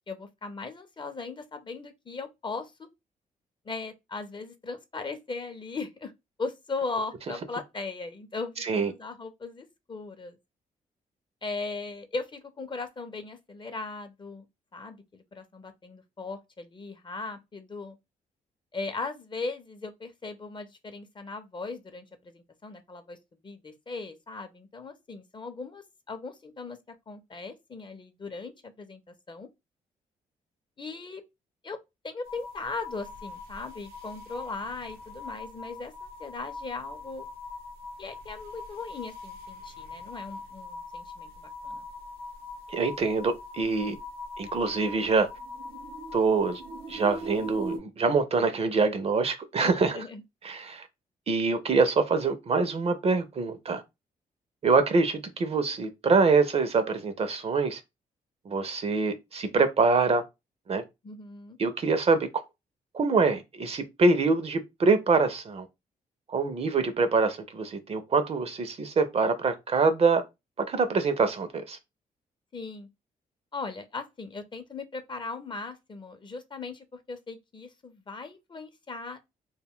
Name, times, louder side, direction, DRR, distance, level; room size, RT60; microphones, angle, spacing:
voice 1, 0.1-2.9 3.6-6.1 6.4-10.4 11.4-14.5 14.7-18.0 18.7-23.2 23.4-26.8 27.1-29.5 30.8-31.2 31.6-31.8 32.0-37.3 38.0-41.9 49.6-50.2 61.0-61.6 72.5-72.9 73.5-79.2, left 3 dB, 30° left, 0.6 m, -38 dB
voice 2, 8.6-8.9 42.7-44.0 44.4-45.3 46.1-46.6 46.9-50.0 50.4-50.9 51.3-53.8 54.6-57.8 58.5-60.2 60.7-60.8 61.6-62.4 62.9-65.7 66.3-70.2 70.6-71.8, right 4 dB, 45° right, 0.5 m, -25 dB
sound 1, 32.2-47.8, left 1 dB, 90° right, 0.7 m, -41 dB
2.2 x 2.1 x 3.5 m
cardioid pair, 70°, 15 cm